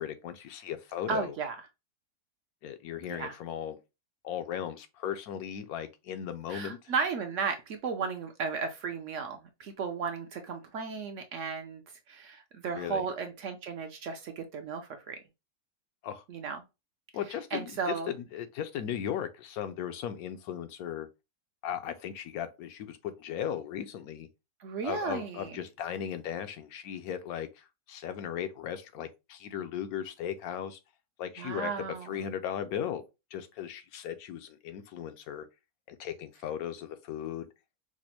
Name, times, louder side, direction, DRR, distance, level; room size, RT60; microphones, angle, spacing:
voice 1, 0.0-1.3 2.6-3.8 4.2-6.8 12.8-13.0 16.0-16.2 17.1-21.1 21.6-24.3 24.8-30.8 31.2-31.7 32.0-33.0 33.3-35.5 35.9-37.5, left 9 dB, 75° left, 1.0 m, -37 dB
voice 2, 1.1-1.6 3.1-3.3 6.5-11.8 12.1-15.2 16.3-16.6 17.5-18.1 24.6-25.5 31.4-32.2, right 5 dB, 65° right, 0.8 m, -34 dB
5.0 x 2.0 x 2.8 m
omnidirectional pair, 1.6 m